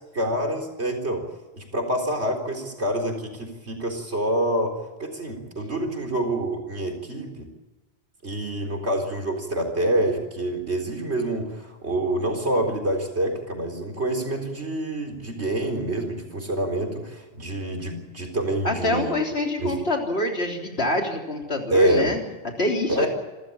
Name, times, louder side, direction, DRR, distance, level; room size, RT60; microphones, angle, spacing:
voice 1, 0.1-1.2 1.5-7.5 8.2-19.1 19.6-19.8 21.7-22.1 22.9-23.1, right 1 dB, 85° right, 3 dB, 4.4 m, -26 dB
voice 2, 18.6-22.2 22.6-23.1, left 1 dB, 70° left, 1 dB, 3.9 m, -25 dB
27.5 x 14.0 x 8.6 m, 1.2 s
omnidirectional pair, 1.1 m